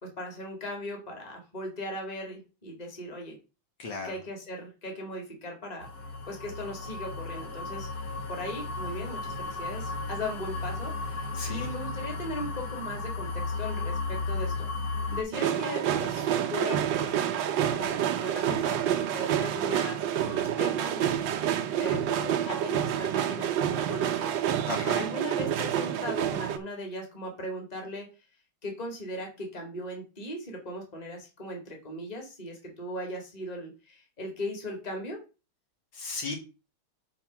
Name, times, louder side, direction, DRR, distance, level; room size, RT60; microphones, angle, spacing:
voice 1, 0.0-3.4 4.0-5.9 6.3-7.9 8.3-14.7 15.1-17.2 17.6-18.8 19.1-20.0 20.3-21.2 21.8-24.4 24.9-28.1 28.6-35.2, left 1 dB, 20° left, 1 dB, 1.9 m, -38 dB
voice 2, 3.8-4.2 11.3-11.7 24.7-25.0 35.9-36.4, left 3 dB, 65° left, 2 dB, 2.3 m, -35 dB
sound 1, 5.8-15.2, left 3 dB, 45° left, 2.0 m, -34 dB
sound 2, 15.3-26.6, right 10 dB, 70° right, 1.3 m, -28 dB
5.3 x 4.6 x 5.9 m, 0.31 s
omnidirectional pair, 2.3 m